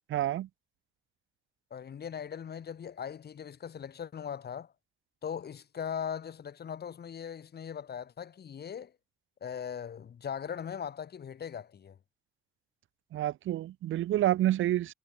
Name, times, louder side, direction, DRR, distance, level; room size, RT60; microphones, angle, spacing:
voice 1, 0.1-0.5 13.1-14.9, right 13 dB, 80° right, 3.6 m, -28 dB
voice 2, 1.7-4.7 5.2-8.9 9.4-12.0, left 8 dB, 55° left, 7.9 m, -39 dB
cardioid pair, 90°, 20 cm